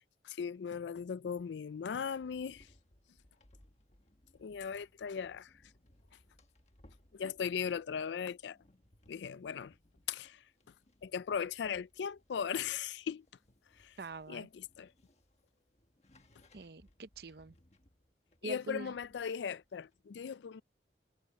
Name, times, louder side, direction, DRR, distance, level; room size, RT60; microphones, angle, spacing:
voice 1, 0.3-2.7 4.4-5.5 7.1-8.6 9.1-9.7 10.1-10.4 11.0-13.2 13.8-14.0 14.3-14.9 18.4-20.6, left 7 dB, 85° left, 0.4 m, -38 dB
sound 1, 2.0-20.0, left 1 dB, 40° left, 1.5 m, -67 dB
voice 2, 14.0-14.5 16.5-17.5 18.4-18.9, right 3 dB, 60° right, 0.7 m, -44 dB
head